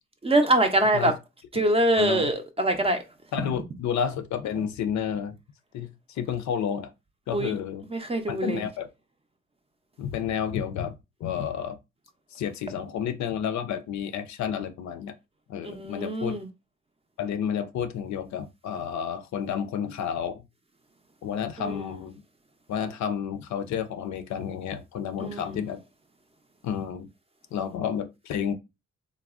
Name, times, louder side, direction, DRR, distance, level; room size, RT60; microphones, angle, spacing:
voice 1, 0.2-1.1 1.5-3.0 7.3-7.5 7.9-8.6 15.6-16.5 25.2-25.5, right 1 dB, 20° right, 0.5 m, -24 dB
voice 2, 2.0-2.3 3.3-5.4 5.7-6.9 7.3-7.9 8.3-8.9 10.0-11.8 12.3-15.1 15.5-16.3 17.2-20.4 21.2-22.1 22.7-25.8 26.6-27.1 27.5-28.5, left 8 dB, 65° left, 0.5 m, -30 dB
3.4 x 2.0 x 2.4 m
cardioid pair, 90°, 30 cm